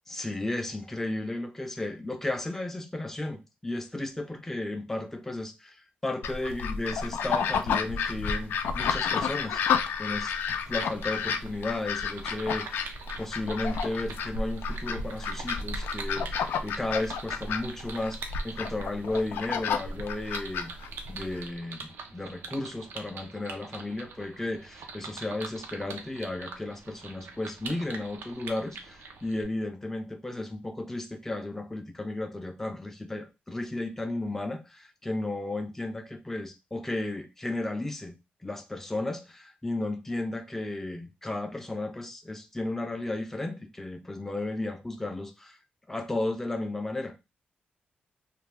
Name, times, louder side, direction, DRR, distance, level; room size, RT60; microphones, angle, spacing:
voice 1, 0.1-5.8 6.0-9.6 10.0-10.3 10.7-12.9 13.2-18.2 18.4-20.7 21.1-38.1 38.4-45.6 45.9-47.2, left 2 dB, 10° left, 0.4 m, -34 dB
sound 1, 6.2-21.4, left 6 dB, 90° left, 0.3 m, -31 dB
sound 2, 10.7-29.4, right 4 dB, 90° right, 0.5 m, -44 dB
2.4 x 2.2 x 3.2 m
wide cardioid pair, 160°, 4 cm